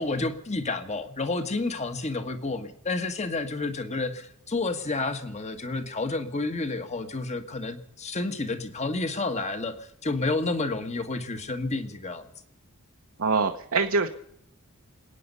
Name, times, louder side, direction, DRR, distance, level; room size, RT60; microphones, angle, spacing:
voice 1, 0.0-12.3, left 3 dB, 30° left, 9 dB, 1.5 m, -30 dB
voice 2, 13.2-14.1, right 4 dB, 65° right, 4 dB, 1.0 m, -24 dB
28.0 x 9.5 x 5.4 m, 0.73 s
head